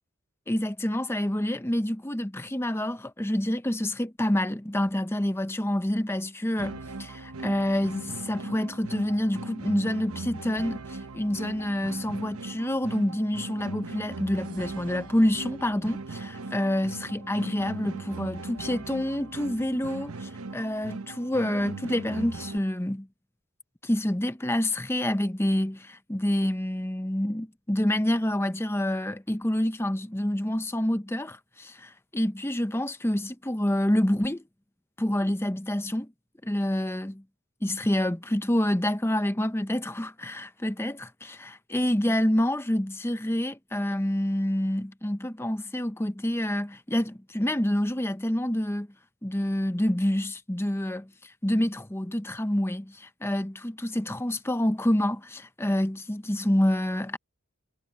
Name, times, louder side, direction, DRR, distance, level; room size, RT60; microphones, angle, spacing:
voice 1, 0.5-23.1 23.8-34.4 35.0-36.1 36.4-37.2 37.6-48.9 49.2-57.2, left 1 dB, 10° left, 0.8 m, -27 dB
sound 1, 6.6-22.6, right 3 dB, 90° right, 1.0 m, -39 dB
head